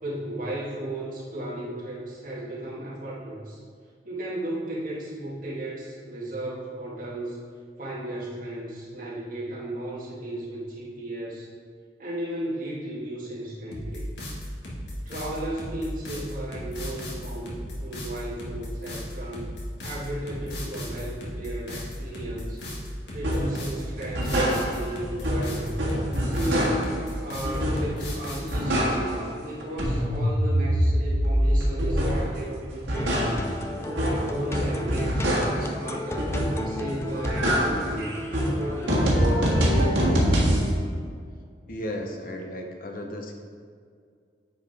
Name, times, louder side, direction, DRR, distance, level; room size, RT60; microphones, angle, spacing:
voice 1, 0.0-3.6 4.1-7.4 7.8-11.5 12.0-14.1 15.0-19.5 19.8-22.6 23.1-25.8 26.3-33.4 34.3-36.4 36.7-38.3 38.6-39.2, right 1 dB, 50° right, -6 dB, 1.8 m, -35 dB
sound 1, 13.7-28.6, equal, 75° left, 1.6 m, -36 dB
sound 2, 23.2-23.6 24.0-25.0 25.2-27.0 27.4-28.1 28.4-29.3 29.6-32.3 32.7-35.7 36.2-36.8 37.1-40.7, equal, 85° right, 1.6 m, -24 dB
sound 3, 32.9-39.6, left 1 dB, 15° left, 0.4 m, -35 dB
voice 2, 41.7-43.3, left 1 dB, 50° left, 3 dB, 0.9 m, -34 dB
9.3 x 4.8 x 3.5 m, 2.1 s
head